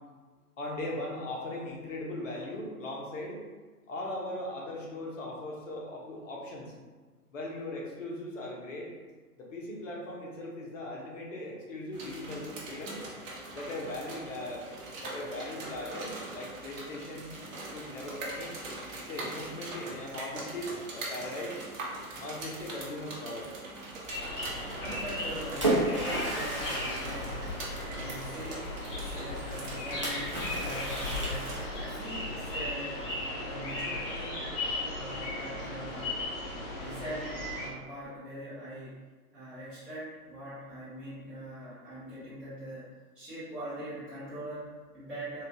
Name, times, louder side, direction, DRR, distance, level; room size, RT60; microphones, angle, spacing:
voice 1, 0.6-3.4 3.9-6.7 7.3-8.9 9.4-13.0 13.5-14.7 15.0-17.3 17.7-18.5 18.9-21.6 22.2-23.5, left 1 dB, 55° left, -2 dB, 1.0 m, -39 dB
sound 1, 11.9-31.6, right 2 dB, 55° right, 1.0 m, -42 dB
sound 2, 24.1-37.7, left 2 dB, 35° left, 1.1 m, -36 dB
voice 2, 24.8-27.5 27.9-33.1 33.4-34.4 34.9-36.2 36.7-39.0 39.3-42.8 43.1-45.4, right 1 dB, ahead, -17 dB, 0.8 m, -42 dB
Splash splatter, 25.0-28.2 30.0-32.0, right 1 dB, 25° right, 0.3 m, -33 dB
3.6 x 2.4 x 2.6 m, 1.3 s
figure-of-eight pair, 130°, 46 cm